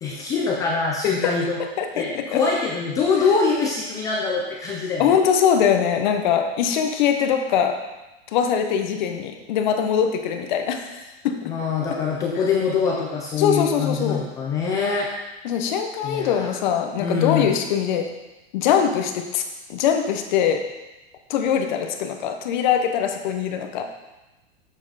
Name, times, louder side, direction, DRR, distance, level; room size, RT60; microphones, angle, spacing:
voice 1, 0.0-1.6 1.9-5.1 11.5-15.1 16.0-16.6 17.0-17.5, left 5 dB, 10° left, -3 dB, 0.4 m, -24 dB
voice 2, 1.0-1.3 1.6-2.4 5.0-7.7 8.3-11.4 13.4-14.2 15.4-18.1 18.5-19.4 19.7-20.6 21.3-23.8, left 8 dB, 45° left, 5 dB, 1.0 m, -22 dB
7.7 x 6.4 x 4.8 m, 1.0 s
supercardioid pair, 165°, 32 cm